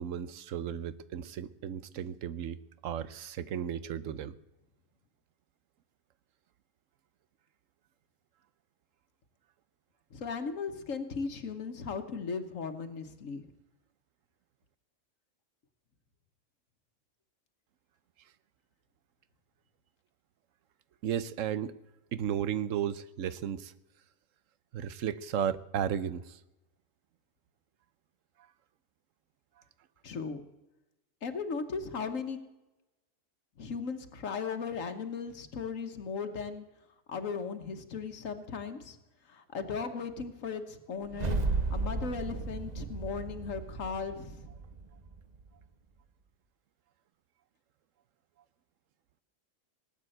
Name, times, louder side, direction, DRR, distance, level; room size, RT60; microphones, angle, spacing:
voice 1, 0.0-2.6 2.8-4.3 21.0-21.7 22.1-23.7 24.7-26.4, right 9 dB, 85° right, 16 dB, 1.1 m, -34 dB
voice 2, 10.1-13.4 30.0-30.4 31.2-32.4 33.6-36.6 37.1-39.0 39.3-41.4 41.7-44.5, left 5 dB, 85° left, 7 dB, 1.6 m, -37 dB
sound 1, 41.0-45.4, right 3 dB, 35° right, 1.2 m, -34 dB
19.0 x 9.0 x 7.8 m, 0.98 s
omnidirectional pair, 1.3 m